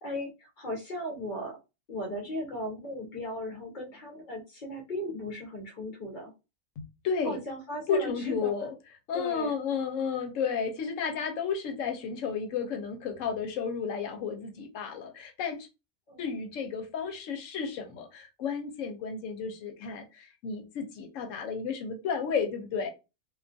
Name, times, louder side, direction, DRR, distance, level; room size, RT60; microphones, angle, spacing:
voice 1, 0.0-1.6 1.9-6.3 7.2-8.5 9.1-9.5 16.1-16.3, equal, 50° left, -1 dB, 0.6 m, -37 dB
voice 2, 6.8-7.4 7.9-8.7 9.1-15.7 16.2-22.9, left 6 dB, 75° left, 5 dB, 0.9 m, -32 dB
2.4 x 2.3 x 2.5 m, 0.28 s
omnidirectional pair, 1.4 m